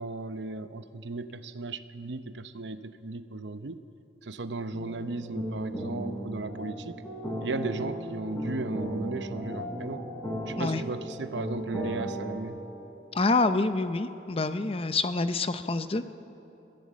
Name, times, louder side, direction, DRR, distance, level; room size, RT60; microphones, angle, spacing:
voice 1, 0.0-3.8 4.2-7.0 7.4-10.0 10.5-12.6, right 3 dB, 90° right, 11 dB, 0.8 m, -36 dB
sound 1, 4.7-12.4, equal, 15° left, 4.3 m, -35 dB
voice 2, 13.1-16.0, left 3 dB, 35° left, 11 dB, 0.6 m, -27 dB
23.0 x 15.0 x 7.4 m, 3.0 s
head